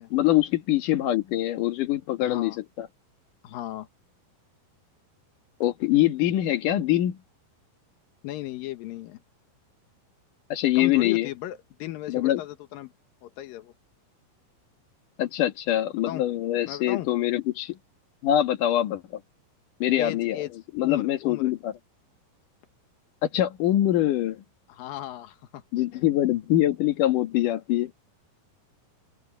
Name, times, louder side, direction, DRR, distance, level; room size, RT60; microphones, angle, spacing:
voice 1, 0.1-2.9 5.6-7.2 10.5-11.3 12.1-12.4 15.2-17.8 18.2-19.0 19.8-20.4 20.7-21.7 23.2-24.4 25.7-27.9, left 13 dB, 60° left, 2.4 m, -24 dB
voice 2, 2.2-2.6 3.4-3.9 8.2-9.2 10.8-12.9 13.2-13.7 16.1-16.2 16.7-17.1 20.0-20.5 20.8-21.5 24.7-25.6, left 14 dB, 85° left, 2.0 m, -36 dB
open air
omnidirectional pair, 5.7 m